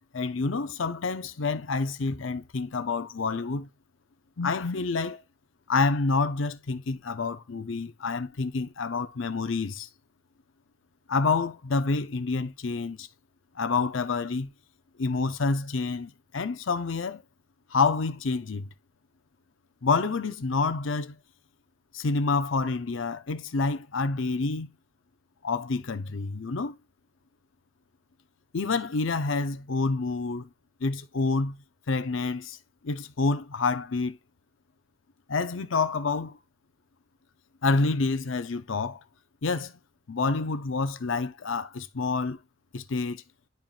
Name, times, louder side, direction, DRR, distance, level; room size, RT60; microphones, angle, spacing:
voice 1, 0.1-3.7 4.4-5.2 5.7-9.9 11.1-13.1 13.6-14.5 15.0-17.2 17.7-18.7 19.8-21.2 21.9-24.7 25.4-26.8 28.5-30.5 30.8-31.6 31.9-32.6 32.8-34.2 35.3-36.4 37.6-39.0 39.4-39.7 40.1-42.4 42.7-43.2, left 4 dB, 85° left, 0.7 m, -28 dB
10.5 x 4.4 x 2.5 m
head